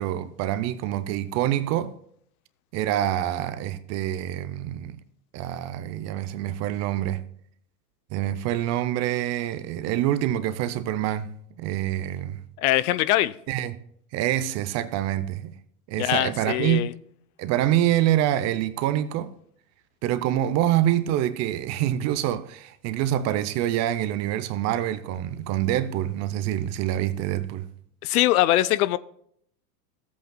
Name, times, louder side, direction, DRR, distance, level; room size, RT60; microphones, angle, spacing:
voice 1, 0.0-1.9 2.7-5.0 5.3-7.2 8.1-12.4 13.5-13.8 14.1-15.6 15.9-16.9 17.4-19.3 20.0-27.7, right 12 dB, 35° right, 0.6 m, -26 dB
voice 2, 12.6-13.3 16.0-16.9 28.0-29.0, left 15 dB, 60° left, 0.6 m, -22 dB
15.0 x 8.2 x 2.2 m
hypercardioid pair, 120°, 50 cm